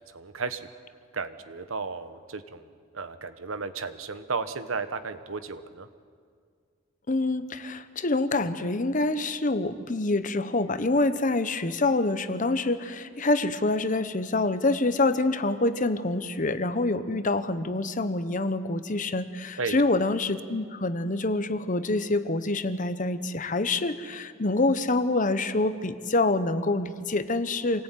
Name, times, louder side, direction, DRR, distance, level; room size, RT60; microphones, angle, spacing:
voice 1, 0.1-0.7 1.1-2.7 2.9-5.9 19.6-19.8, right 4 dB, 80° right, 11 dB, 1.2 m, -34 dB
voice 2, 7.1-27.8, left 2 dB, 40° left, 12 dB, 1.0 m, -26 dB
26.5 x 19.0 x 9.2 m, 2.1 s
head